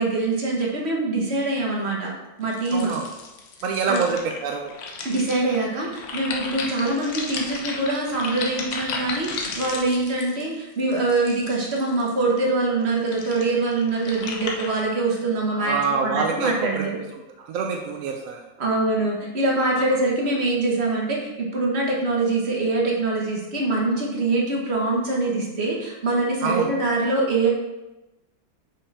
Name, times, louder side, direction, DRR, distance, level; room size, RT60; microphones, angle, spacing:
voice 1, 0.0-2.1 2.4-2.9 3.9-4.0 5.0-16.9 18.6-27.5, right 2 dB, 35° right, -2 dB, 1.4 m, -24 dB
sound 1, 2.5-12.1 12.8-14.8, left 4 dB, 70° left, 1.5 m, -34 dB
voice 2, 2.7-3.1 3.6-4.7 15.5-18.5 19.8-19.9 26.4-26.7, right 5 dB, 75° right, 2 dB, 0.7 m, -26 dB
5.6 x 5.4 x 4.1 m, 1.0 s
omnidirectional pair, 2.1 m